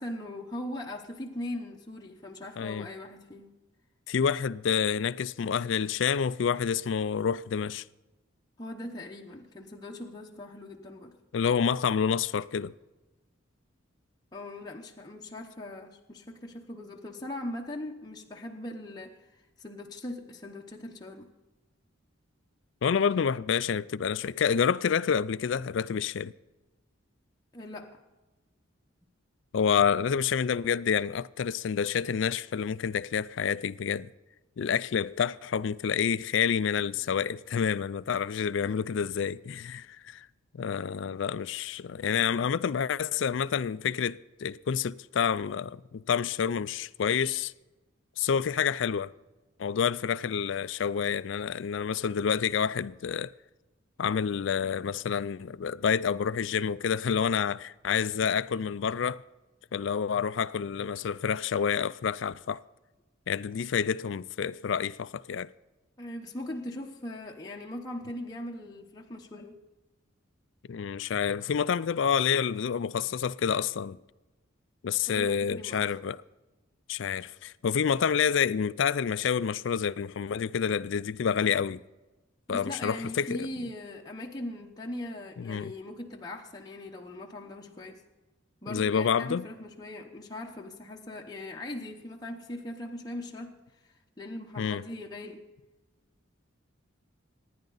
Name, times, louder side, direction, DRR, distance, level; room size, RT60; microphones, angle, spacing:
voice 1, 0.0-3.6 8.6-11.1 14.3-21.3 27.5-28.0 38.7-39.0 66.0-69.6 75.1-75.9 82.5-88.0 88.6-93.6 94.2-95.4, left 1 dB, 20° left, 0.9 m, -40 dB
voice 2, 2.6-2.9 4.1-7.8 11.3-12.7 22.8-26.3 29.5-34.1 34.6-40.3 40.5-47.5 48.2-49.1 49.6-53.3 54.0-59.2 59.7-62.6 63.3-65.5 70.7-74.0 74.8-76.2 76.9-81.8 82.5-83.5 85.4-85.7 88.7-89.5 94.6-94.8, left 7 dB, 65° left, 0.4 m, -28 dB
26.0 x 10.5 x 4.0 m
head